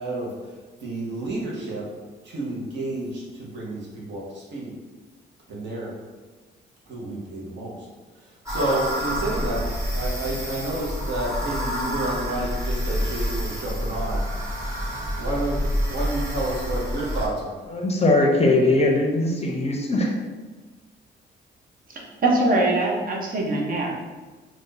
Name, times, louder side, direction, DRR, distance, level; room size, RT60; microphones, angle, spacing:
voice 1, 0.0-1.9 2.2-4.7 5.5-6.0 6.9-7.9 8.1-9.7 9.9-14.2 15.2-17.6, right 2 dB, 65° right, -4 dB, 1.0 m, -30 dB
sound 1, 8.5-17.3, equal, 15° right, 1.2 m, -28 dB
voice 2, 17.7-20.1, left 2 dB, 30° left, 1 dB, 0.6 m, -20 dB
voice 3, 21.9-23.9, right 2 dB, 45° right, -1 dB, 0.7 m, -23 dB
2.6 x 2.5 x 3.7 m, 1.3 s
cardioid pair, 90°, 20 cm